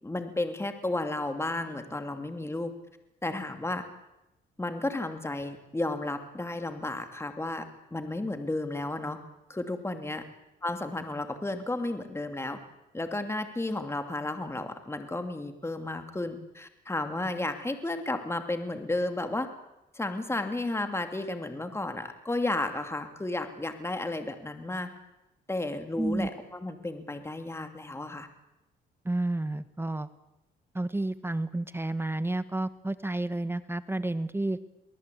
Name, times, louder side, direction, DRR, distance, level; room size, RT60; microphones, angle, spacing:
voice 1, 0.0-2.7 3.2-3.8 4.6-9.2 9.5-10.2 10.6-12.6 12.9-19.5 19.9-24.9 25.5-28.3, left 2 dB, 15° left, 7 dB, 2.6 m, -33 dB
voice 2, 26.0-26.3 29.0-30.1 30.7-34.6, right 2 dB, 10° right, 13 dB, 1.1 m, -30 dB
23.5 x 19.5 x 8.5 m, 0.90 s
cardioid pair, 90°, 20 cm